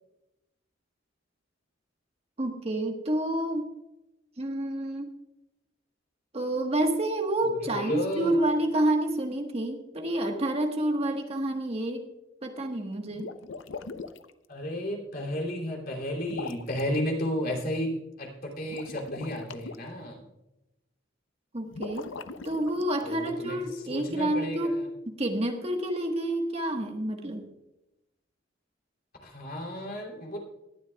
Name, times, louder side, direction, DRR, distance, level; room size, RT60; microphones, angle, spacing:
voice 1, 2.4-3.7 4.4-5.1 6.3-12.1 12.4-13.3 21.5-22.1 22.4-27.5, right 1 dB, 35° right, 4 dB, 1.4 m, -29 dB
voice 2, 7.6-8.4 14.5-20.2 23.0-23.6 23.9-24.8 29.2-30.4, equal, 50° left, 1 dB, 3.0 m, -33 dB
sound 1, 13.1-14.3 16.2-16.8 18.6-19.8 21.7-23.4, left 4 dB, 75° left, 0.7 m, -40 dB
19.5 x 11.5 x 2.3 m, 0.92 s
head